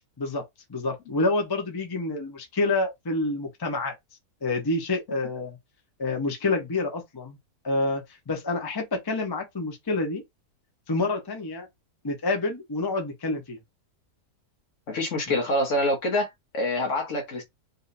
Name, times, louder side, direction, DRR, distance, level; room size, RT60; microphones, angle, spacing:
voice 1, 0.2-3.9 4.4-5.6 6.0-7.4 7.6-10.2 10.9-11.7 12.0-13.6 15.3-15.4, left 2 dB, 20° left, 0.7 m, -28 dB
voice 2, 14.9-17.4, left 1 dB, 55° left, 1.2 m, -26 dB
3.6 x 2.8 x 2.6 m
omnidirectional pair, 1.7 m